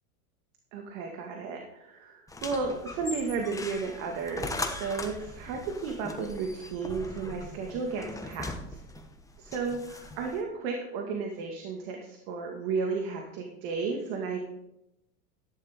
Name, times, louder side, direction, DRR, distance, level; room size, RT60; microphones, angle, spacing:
voice 1, 0.7-8.8 9.4-14.4, right 4 dB, 55° right, 2 dB, 2.0 m, -33 dB
sound 1, 2.3-10.4, left 2 dB, 5° left, 1.1 m, -40 dB
13.5 x 10.5 x 3.7 m, 0.86 s
hypercardioid pair, 110°, 47 cm